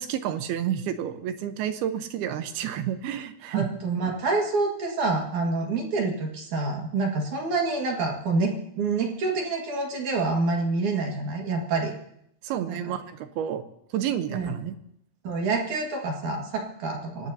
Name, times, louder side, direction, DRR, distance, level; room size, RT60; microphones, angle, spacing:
voice 1, 0.0-3.7 12.4-13.6 13.9-14.7, right 10 dB, 80° right, 9 dB, 2.9 m, -30 dB
voice 2, 3.5-11.9 12.7-12.9 14.3-14.5 15.2-17.3, right 3 dB, 55° right, 0 dB, 3.1 m, -27 dB
25.0 x 18.5 x 2.8 m, 0.73 s
omnidirectional pair, 4.5 m